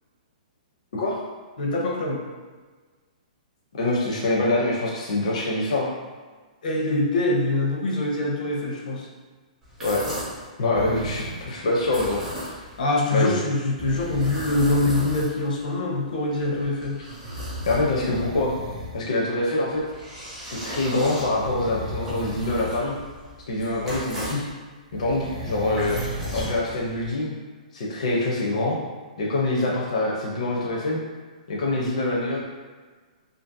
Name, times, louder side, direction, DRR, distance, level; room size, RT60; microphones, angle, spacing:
voice 1, 1.6-2.2 6.6-9.1 12.8-17.0, left 2 dB, 85° left, -2 dB, 0.7 m, -24 dB
voice 2, 3.7-5.9 9.8-10.0 10.6-12.2 13.1-13.4 17.6-18.5 18.9-19.8 20.4-22.9 23.5-24.4 24.9-26.0 26.3-27.3 27.7-28.8 29.2-31.0 31.5-32.4, left 2 dB, 50° left, -4 dB, 0.5 m, -25 dB
sound 1, 9.6-10.5 11.8-12.8 13.9-15.6 16.4-18.2 19.6-24.5 25.5-27.1, equal, 10° right, 0.4 m, -36 dB
sound 2, 10.7-11.5 13.8-15.2 16.6-16.7 17.5-19.0 19.7-19.8 21.1-22.8 23.1-23.3 24.9-26.6 27.1-27.2, equal, 45° right, 0.7 m, -35 dB
2.5 x 2.4 x 2.5 m, 1.4 s
hypercardioid pair, 180°, 4 cm